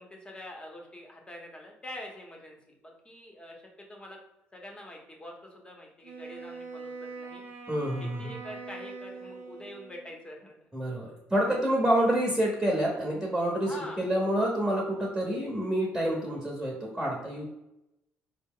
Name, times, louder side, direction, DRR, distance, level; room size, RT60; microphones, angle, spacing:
voice 1, 0.0-4.2 4.5-7.4 8.0-10.6 13.6-14.0, left 1 dB, 20° left, 0 dB, 1.0 m, -45 dB
Wind instrument woodwind instrument, 6.0-10.2, right 4 dB, 55° right, 0.7 m, -43 dB
voice 2, 7.7-8.3 10.7-17.4, right 1 dB, 10° right, -3 dB, 1.0 m, -28 dB
4.1 x 2.1 x 3.7 m, 0.89 s
supercardioid pair, 85°, 5 cm